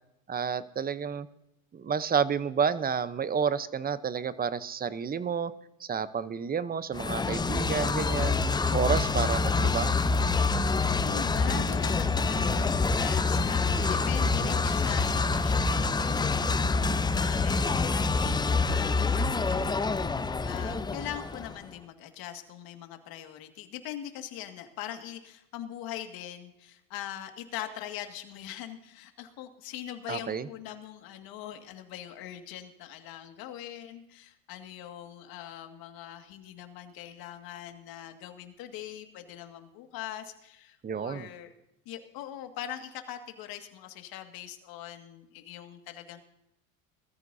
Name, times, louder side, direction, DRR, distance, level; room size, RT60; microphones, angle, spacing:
voice 1, 0.3-1.3 1.7-5.5 5.8-8.4 8.7-9.9 30.1-30.5 40.8-41.3, right 6 dB, 20° right, 15 dB, 0.8 m, -30 dB
sound 1, 6.9-21.6, left 4 dB, 10° left, 0.6 m, -26 dB
voice 2, 11.0-15.9 16.4-41.5 41.9-46.2, left 11 dB, 60° left, 6 dB, 2.1 m, -42 dB
21.0 x 14.0 x 2.7 m, 0.88 s
supercardioid pair, 100°, 41 cm